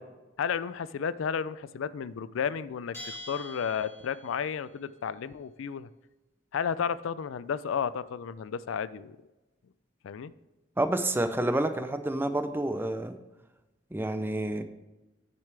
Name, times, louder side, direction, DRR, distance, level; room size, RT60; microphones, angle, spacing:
voice 1, 0.4-5.9 6.5-9.2 10.0-10.3, left 7 dB, 80° left, 16 dB, 0.4 m, -32 dB
Bell, 2.9-4.5, equal, 15° left, 3.0 m, -44 dB
voice 2, 10.8-13.1 13.9-14.6, right 1 dB, 10° right, 9 dB, 0.5 m, -29 dB
9.8 x 6.9 x 3.3 m, 1.1 s
head